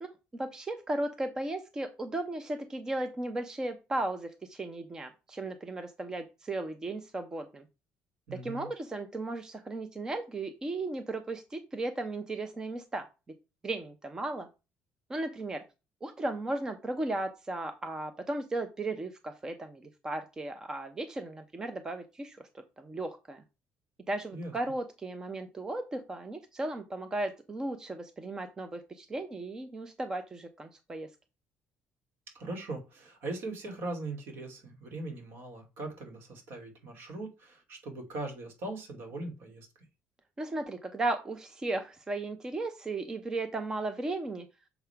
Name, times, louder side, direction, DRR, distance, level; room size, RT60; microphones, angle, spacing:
voice 1, 0.0-7.6 8.3-13.1 13.6-14.5 15.1-15.6 16.0-23.4 24.1-31.1 40.4-44.5, right 2 dB, 15° right, 9 dB, 0.6 m, -36 dB
voice 2, 8.3-8.7 24.3-24.5 32.3-39.7, right 2 dB, 60° right, 3 dB, 2.5 m, -40 dB
6.8 x 3.6 x 5.7 m, 0.28 s
cardioid pair, 170°, 4 cm